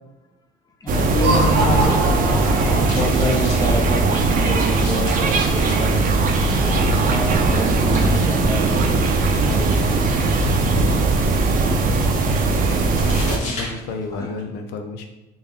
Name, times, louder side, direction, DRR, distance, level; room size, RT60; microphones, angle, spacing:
voice 1, 0.8-6.1 6.6-9.1 9.3-10.0 10.9-11.0 13.7-13.8 14.1-14.4, left 1 dB, 20° left, 1 dB, 0.6 m, -28 dB
sound 1, 0.9-13.4, right 3 dB, 55° right, 0.6 m, -19 dB
Laughter, 1.0-3.4, right 2 dB, 75° right, 1.0 m, -24 dB
sound 2, 2.1-14.4, left 2 dB, 50° left, 1.5 m, -39 dB
voice 2, 12.7-15.1, left 4 dB, 80° left, 5 dB, 0.5 m, -31 dB
3.5 x 2.5 x 3.5 m, 1.0 s
cardioid pair, 110°, 17 cm